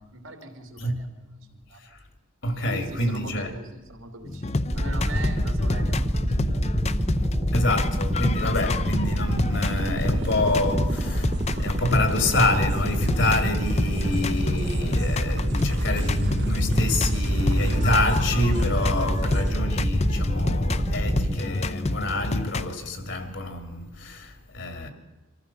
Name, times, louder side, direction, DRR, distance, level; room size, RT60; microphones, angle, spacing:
voice 1, 0.0-1.9 2.7-6.5 8.2-8.3, right 2 dB, 85° right, 3.2 m, -41 dB
voice 2, 2.4-3.5 7.5-24.9, left 1 dB, 60° left, 2.4 m, -27 dB
sound 1, 4.3-22.7, left 2 dB, 30° left, 0.6 m, -29 dB
sound 2, 4.7-21.4, equal, 25° right, 1.1 m, -26 dB
sound 3, 8.6-19.5, right 3 dB, 55° right, 0.8 m, -42 dB
24.5 x 15.0 x 7.2 m
head